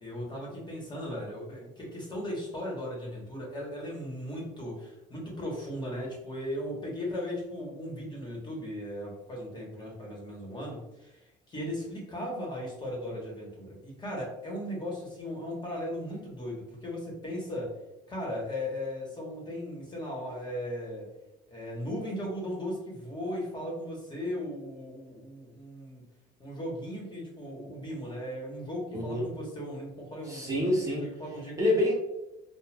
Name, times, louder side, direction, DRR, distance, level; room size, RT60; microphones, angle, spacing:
voice 1, 0.0-17.7 18.1-21.1 21.5-26.0 26.4-31.6, equal, 25° left, -3 dB, 1.1 m, -37 dB
voice 2, 28.9-29.3 30.3-31.0 31.6-31.9, left 1 dB, 20° right, -5 dB, 0.7 m, -26 dB
2.4 x 2.2 x 3.2 m, 0.93 s
cardioid pair, 110°, 17 cm